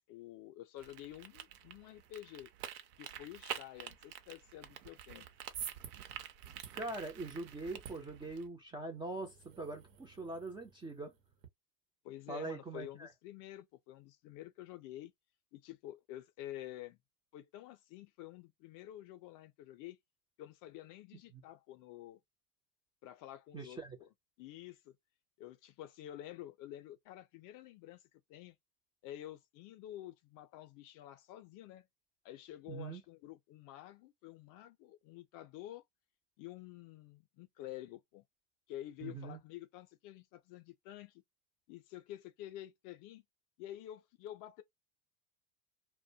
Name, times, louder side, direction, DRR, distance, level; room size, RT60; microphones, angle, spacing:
voice 1, 0.0-2.5 3.0-5.3 12.0-15.1 15.5-17.0 17.3-20.0 20.4-22.2 23.0-24.1 24.4-24.9 25.4-28.6 29.0-31.9 32.2-35.8 36.4-38.2 38.7-41.2 41.7-43.2 43.6-44.6, left 13 dB, 45° left, 0.5 m, -49 dB
sound 1, 0.8-8.5, right 10 dB, 70° right, 0.7 m, -49 dB
sound 2, 5.1-11.5, right 8 dB, 90° right, 1.0 m, -52 dB
voice 2, 6.7-11.1 12.3-13.1 21.3-21.4 23.5-24.0 32.7-33.0 39.0-39.4, right 3 dB, 10° right, 0.3 m, -42 dB
2.2 x 2.1 x 2.6 m
hypercardioid pair, 105°, 48 cm